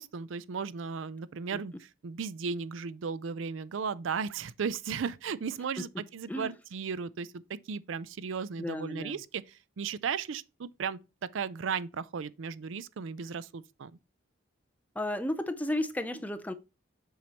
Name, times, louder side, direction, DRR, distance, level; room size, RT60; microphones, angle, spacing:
voice 1, 0.0-1.7 2.0-9.4 9.8-11.0 11.3-13.9, right 6 dB, 75° right, 0.4 m, -35 dB
voice 2, 8.6-9.2 15.0-16.5, left 1 dB, 10° left, 0.5 m, -33 dB
7.5 x 5.5 x 2.9 m
head